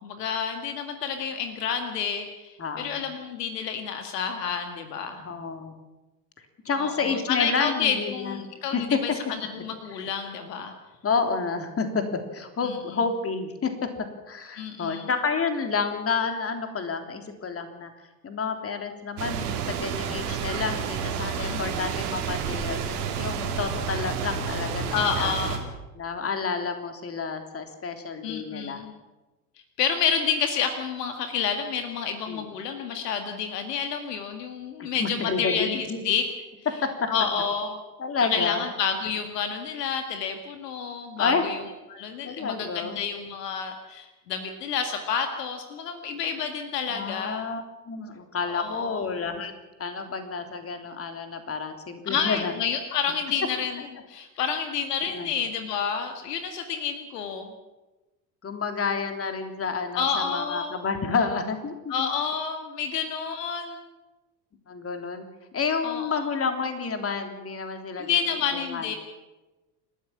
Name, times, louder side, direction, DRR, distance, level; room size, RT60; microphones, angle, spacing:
voice 1, 0.0-5.2 6.8-9.1 9.5-10.7 12.6-12.8 14.6-15.1 21.3-21.6 24.9-25.6 28.2-28.9 29.8-36.3 37.1-37.8 38.3-41.6 41.9-47.4 48.5-49.1 52.1-53.8 54.1-57.5 59.9-60.8 61.9-63.8 65.8-66.2 68.0-69.0, left 7 dB, 70° left, 6 dB, 2.2 m, -29 dB
voice 2, 2.6-3.0 5.2-5.7 6.6-8.4 8.7-9.0 11.0-12.0 12.3-13.9 14.3-17.9 18.2-25.3 25.9-28.8 32.3-32.5 35.0-36.0 38.0-38.6 41.2-41.5 42.2-43.0 46.9-49.5 49.8-52.5 55.1-55.3 58.4-62.1 64.7-65.3 65.5-68.2 68.5-69.0, left 5 dB, 25° left, 6 dB, 3.4 m, -29 dB
sound 1, 19.2-25.6, right 7 dB, 65° right, 3.8 m, -30 dB
29.5 x 13.0 x 7.3 m, 1.1 s
figure-of-eight pair, 70°, 49 cm